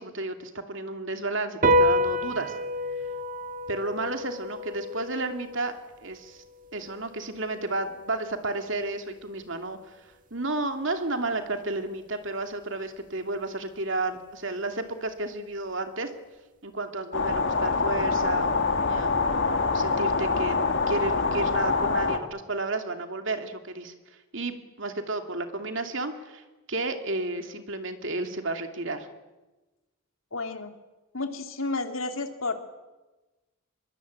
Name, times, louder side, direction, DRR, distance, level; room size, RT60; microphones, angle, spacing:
voice 1, 0.0-2.5 3.7-5.7 6.0-6.4 6.7-10.0 10.3-16.1 16.6-18.5 18.8-20.6 20.9-23.9 24.3-29.1, right 2 dB, 60° right, 6 dB, 2.7 m, -32 dB
sound 1, 1.6-8.3, equal, 40° right, 1.5 m, -29 dB
sound 2, 17.1-22.2, left 4 dB, 60° left, 2.1 m, -25 dB
voice 2, 30.3-30.7 31.1-32.5, left 3 dB, 75° left, 6 dB, 2.8 m, -31 dB
24.5 x 22.0 x 8.5 m, 1.1 s
head